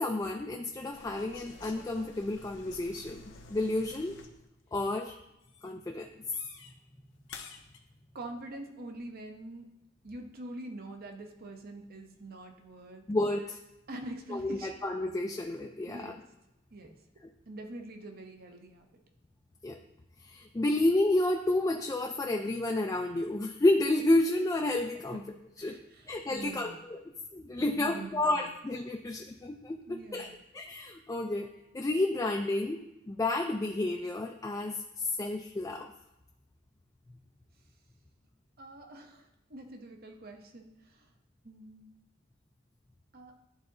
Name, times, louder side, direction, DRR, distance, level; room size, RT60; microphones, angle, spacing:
voice 1, 0.0-3.2 3.5-4.2 4.7-5.1 5.6-6.1 13.1-13.6 14.3-16.1 19.6-19.8 20.2-25.2 25.6-25.8 26.1-27.0 27.3-30.3 30.5-31.5 31.7-32.8 33.1-35.9, left 2 dB, 15° left, 2 dB, 0.3 m, -30 dB
sound 1, 0.9-4.4 4.7-5.1 5.4-5.7 6.3-6.7 7.3-7.8, left 4 dB, 70° left, 0.8 m, -50 dB
voice 2, 8.1-9.7 10.0-13.0 13.9-14.7 15.8-16.2 16.7-16.9 17.5-18.9 25.1-25.2 25.6-26.8 27.6-28.5 29.9-30.4 38.6-41.1 41.4-41.9 43.1-43.3, right 2 dB, 50° right, 4 dB, 0.8 m, -45 dB
11.5 x 3.9 x 2.6 m, 0.90 s
head